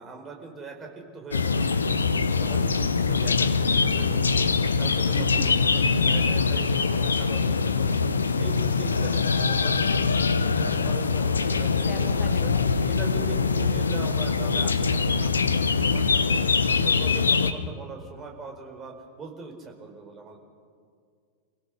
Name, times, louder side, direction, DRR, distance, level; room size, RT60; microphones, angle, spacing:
voice 1, 0.0-4.5 4.8-8.1 8.4-12.5 12.9-20.4, right 4 dB, 25° right, 2 dB, 4.7 m, -41 dB
sound 1, 1.3-17.5, left 4 dB, 75° left, 1.0 m, -23 dB
voice 2, 5.1-5.6 11.9-12.9, left 2 dB, 15° left, 3 dB, 1.6 m, -41 dB
26.5 x 16.5 x 6.6 m, 2.1 s
figure-of-eight pair, 90°, 0 cm